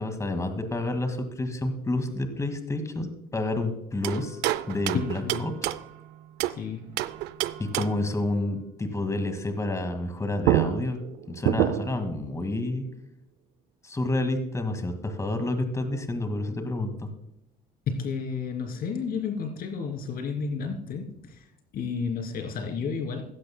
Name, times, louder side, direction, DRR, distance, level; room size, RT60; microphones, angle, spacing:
voice 1, 0.0-4.4 4.7-5.7 7.6-11.0 11.3-12.9 13.8-17.1, left 2 dB, 20° left, 7 dB, 1.9 m, -29 dB
sound 1, 4.0-6.6 7.0-8.1 10.1-10.2 10.4-12.1, right 14 dB, 90° right, 0.5 m, -28 dB
voice 2, 4.9-5.5 6.5-7.0 17.9-21.4 21.7-23.2, left 5 dB, 60° left, 4 dB, 3.0 m, -31 dB
16.0 x 12.0 x 2.2 m, 0.82 s
cardioid pair, 110°, 17 cm